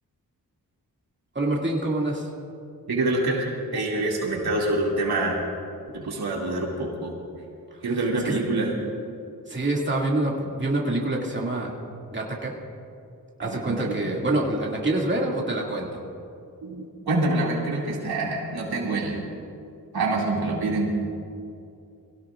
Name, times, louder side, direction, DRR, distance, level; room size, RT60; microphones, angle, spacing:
voice 1, 1.3-2.3 8.2-8.3 9.5-11.7 12.1-12.5 13.4-16.0, right 2 dB, 30° right, -3 dB, 2.4 m, -26 dB
voice 2, 2.9-3.4 3.7-5.4 5.9-7.2 7.8-8.8 13.4-14.0 16.6-19.2 19.9-20.9, right 2 dB, 85° right, -3 dB, 2.5 m, -26 dB
22.5 x 17.0 x 2.5 m, 2.5 s
wide cardioid pair, 85°, 37 cm